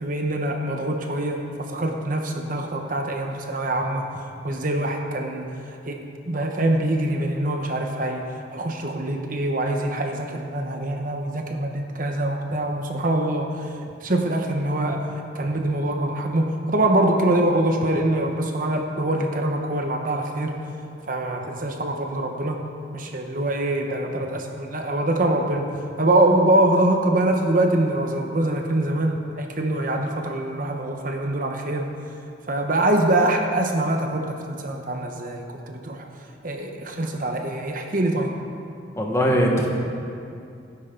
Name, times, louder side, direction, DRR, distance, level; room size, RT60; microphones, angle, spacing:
voice 1, 0.0-4.1 4.4-15.1 15.3-20.6 21.1-22.6 22.9-25.7 26.0-31.9 32.5-36.1 36.4-38.3, right 1 dB, 45° right, 3 dB, 1.0 m, -24 dB
voice 2, 39.0-39.7, equal, 15° left, -1 dB, 1.4 m, -20 dB
17.5 x 10.0 x 3.9 m, 2.5 s
head